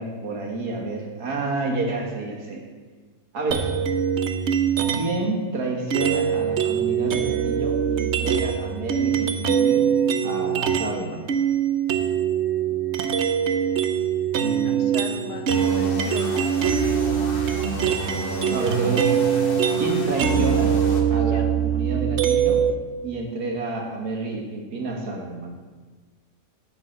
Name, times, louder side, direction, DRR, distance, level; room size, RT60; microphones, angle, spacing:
voice 1, 0.0-2.6 3.3-3.7 4.9-9.9 10.2-11.3 14.4-15.2 18.5-19.3 19.8-20.7 21.1-22.6 23.0-25.5, right 3 dB, 85° right, 0 dB, 2.1 m, -29 dB
sound 1, 3.5-5.2 5.9-11.0 11.3-22.7, right 8 dB, 55° right, 0.8 m, -23 dB
voice 2, 14.6-16.5 18.4-18.6 21.1-21.5, left 5 dB, 90° left, 5 dB, 1.6 m, -39 dB
sound 2, 15.5-21.0, equal, 40° left, 1.1 m, -32 dB
9.7 x 4.6 x 7.7 m, 1.4 s
omnidirectional pair, 1.6 m